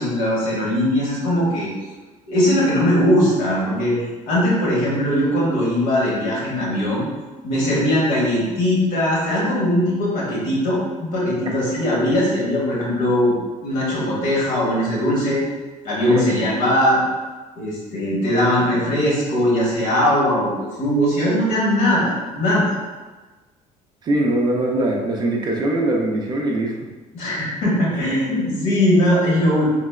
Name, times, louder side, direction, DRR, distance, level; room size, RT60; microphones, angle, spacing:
voice 1, 0.0-1.7 2.3-4.0 4.3-7.1 7.4-13.3 13.6-15.4 15.8-17.0 17.6-22.7 27.1-29.7, left 1 dB, 80° left, -6 dB, 1.3 m, -20 dB
voice 2, 24.0-26.8 28.3-28.4, right 1 dB, 30° right, 0 dB, 0.4 m, -22 dB
3.7 x 2.1 x 2.3 m, 1.2 s
cardioid pair, 165°, 14 cm